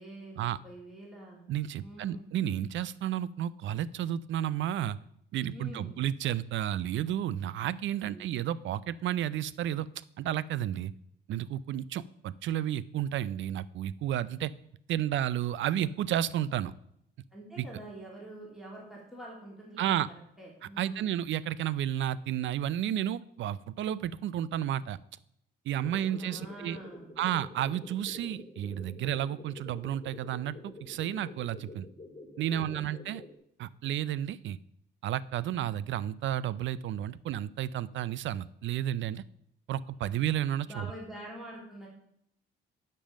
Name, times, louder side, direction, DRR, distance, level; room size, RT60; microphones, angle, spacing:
voice 1, 0.0-1.4 1.8-2.2 5.5-5.9 7.9-8.4 17.3-19.9 20.4-21.1 25.8-27.1 32.5-33.0 40.7-41.9, right 1 dB, ahead, -4 dB, 3.0 m, -46 dB
voice 2, 1.5-5.0 5.3-9.9 10.2-10.9 11.3-14.5 14.9-16.7 17.6-17.7 19.8-20.1 20.8-25.0 25.7-26.8 27.2-31.9 32.4-33.2 33.6-34.6 35.0-39.2 39.7-40.9, right 11 dB, 70° right, 19 dB, 0.5 m, -32 dB
sound 1, 25.8-33.4, left 2 dB, 25° left, 2.2 m, -48 dB
10.0 x 5.4 x 6.3 m, 0.74 s
cardioid pair, 90°, 20 cm